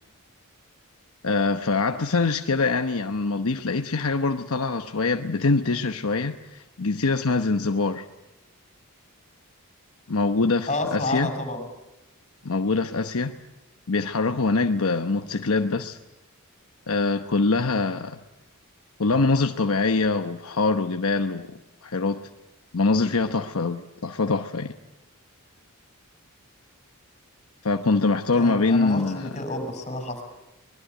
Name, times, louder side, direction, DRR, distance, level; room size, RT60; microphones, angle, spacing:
voice 1, 1.2-8.1 10.1-11.3 12.4-13.4 13.9-16.0 16.9-18.2 19.0-21.5 21.8-22.2 22.7-24.7 27.6-29.4, left 3 dB, 70° left, 1.0 m, -24 dB
voice 2, 10.7-11.6 28.3-30.2, left 2 dB, 30° left, 5.4 m, -29 dB
24.5 x 21.0 x 9.1 m
head